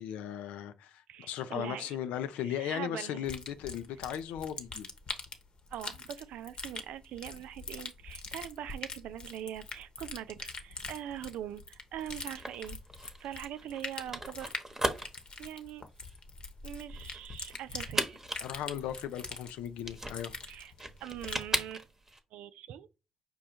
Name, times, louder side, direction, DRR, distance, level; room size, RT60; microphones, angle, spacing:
voice 1, 0.0-4.9 18.4-20.4, left 10 dB, 85° left, 0.4 m, -37 dB
voice 2, 1.1-2.0 2.4-3.2 5.7-12.8 13.2-14.5 15.4-15.9 16.6-18.2 20.5-20.7 21.0-21.9 22.3-22.9, right 11 dB, 80° right, 0.3 m, -42 dB
sound 1, 3.2-21.5, left 3 dB, 45° left, 0.9 m, -44 dB
sound 2, 12.0-22.2, right 1 dB, 20° right, 0.9 m, -38 dB
5.1 x 2.3 x 4.3 m
supercardioid pair, 50°, 2 cm